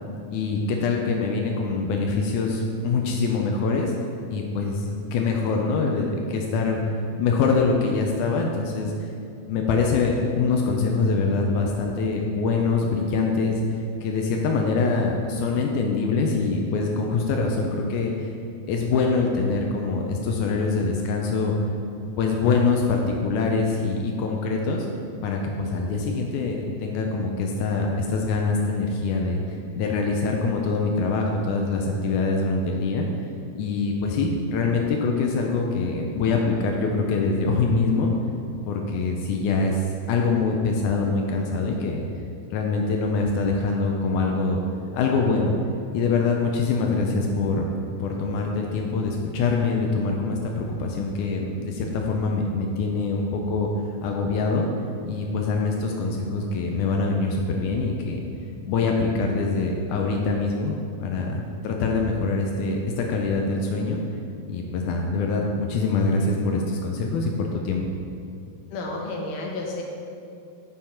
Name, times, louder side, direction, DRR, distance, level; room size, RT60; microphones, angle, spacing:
voice 1, 0.3-3.9 4.3-6.8 7.2-9.1 9.5-13.6 14.0-18.3 18.7-21.6 22.2-24.9 25.2-33.1 33.6-38.1 38.7-42.0 42.5-44.6 44.9-45.5 45.9-47.7 48.0-53.7 54.0-54.7 55.1-58.2 58.7-64.0 64.5-67.8, left 4 dB, 90° left, 1 dB, 1.7 m, -24 dB
voice 2, 68.7-69.8, left 2 dB, 70° left, -1 dB, 1.7 m, -31 dB
9.5 x 3.7 x 4.4 m, 2.6 s
omnidirectional pair, 4.1 m